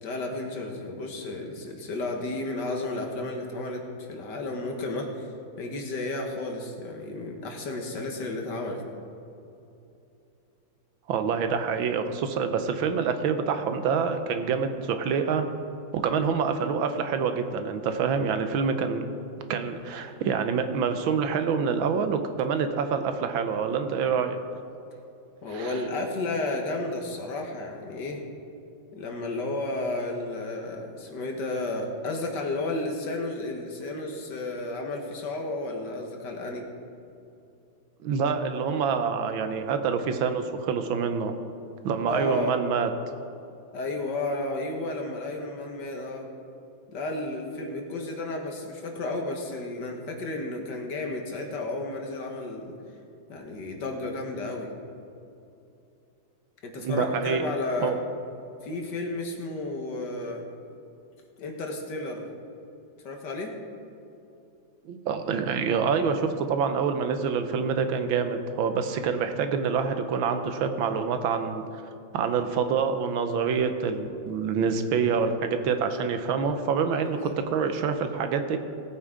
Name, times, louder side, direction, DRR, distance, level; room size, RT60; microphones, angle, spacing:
voice 1, 0.0-5.3 5.6-8.8 25.4-28.2 28.9-36.6 42.1-42.6 43.7-46.3 46.9-52.8 53.3-54.7 56.6-57.9 58.6-60.4 61.4-62.3 63.1-63.5 77.0-77.3, left 2 dB, 60° left, 2 dB, 1.9 m, -32 dB
voice 2, 11.1-15.5 15.9-19.0 19.5-24.4 25.5-25.8 38.0-41.3 41.8-42.9 56.8-57.4 57.8-57.9 64.8-71.6 72.1-78.6, right 6 dB, 80° right, 8 dB, 1.6 m, -26 dB
18.0 x 8.5 x 3.7 m, 2.8 s
omnidirectional pair, 2.2 m